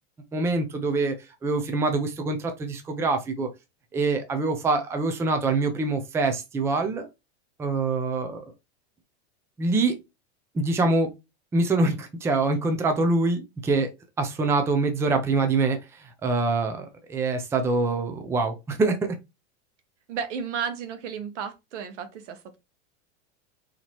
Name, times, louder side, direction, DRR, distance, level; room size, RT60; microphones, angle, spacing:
voice 1, 0.3-1.1 1.4-3.5 3.9-7.1 7.6-8.4 9.6-10.0 10.5-11.1 11.5-13.9 14.2-15.8 16.2-19.0, right 3 dB, 10° right, 0.5 m, -24 dB
voice 2, 20.1-22.6, right 7 dB, 90° right, 1.3 m, -33 dB
4.1 x 2.9 x 3.0 m
supercardioid pair, 155°, 35 cm